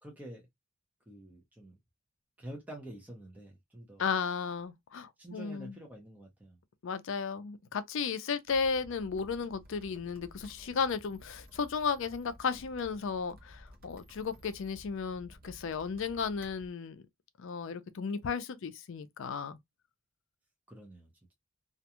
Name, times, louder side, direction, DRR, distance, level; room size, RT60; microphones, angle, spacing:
voice 1, 0.0-0.5 1.1-1.8 2.4-4.0 5.2-6.6 20.7-21.1, right 1 dB, 10° right, 0.7 m, -47 dB
voice 2, 4.0-5.7 6.8-17.0 17.4-19.6, left 5 dB, 60° left, 0.4 m, -34 dB
sound 1, 8.5-16.7, equal, 45° right, 0.7 m, -55 dB
2.4 x 2.2 x 2.8 m
head